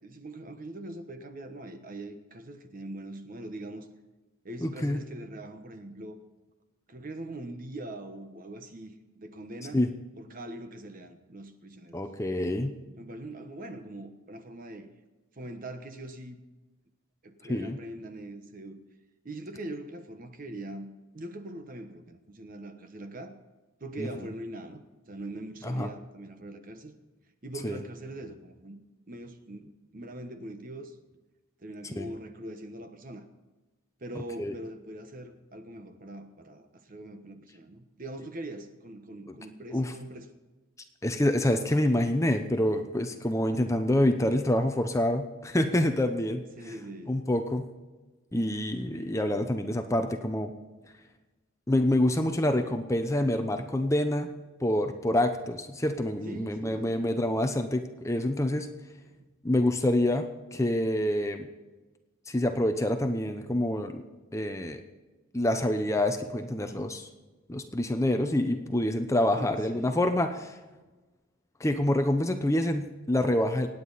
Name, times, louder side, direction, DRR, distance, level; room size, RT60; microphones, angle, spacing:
voice 1, 0.0-3.9 4.4-6.2 6.9-9.8 10.2-12.0 13.0-14.9 15.3-16.4 17.2-18.8 19.2-23.4 23.8-26.9 27.4-28.8 29.1-31.0 31.6-33.3 34.0-40.3 46.6-47.2 56.2-57.5 69.4-70.0, right 1 dB, 40° right, 8 dB, 1.1 m, -42 dB
voice 2, 4.6-5.0 9.7-9.9 11.9-12.7 17.5-17.8 24.0-24.1 25.6-25.9 27.6-27.8 32.0-32.1 34.4-34.5 39.7-39.9 41.0-46.4 47.1-47.7 48.3-50.5 51.7-54.3 54.6-58.7 59.4-61.5 62.3-64.0 64.3-64.8 65.3-67.1 67.5-70.5 71.6-73.7, left 1 dB, 15° left, 6 dB, 0.7 m, -27 dB
25.0 x 9.5 x 4.1 m, 1.2 s
head